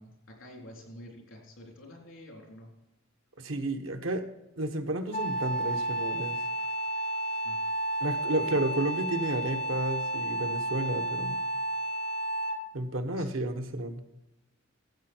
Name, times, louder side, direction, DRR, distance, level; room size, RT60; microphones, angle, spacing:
voice 1, 0.0-2.7 7.3-7.6 13.2-13.4, left 1 dB, 85° left, 0 dB, 3.6 m, -49 dB
voice 2, 3.4-4.2 4.6-6.4 8.0-11.4 12.7-14.0, right 1 dB, 90° right, 5 dB, 1.2 m, -32 dB
Wind instrument woodwind instrument, 5.1-12.7, right 1 dB, 30° left, 1.0 m, -32 dB
13.5 x 7.8 x 4.5 m, 0.94 s
head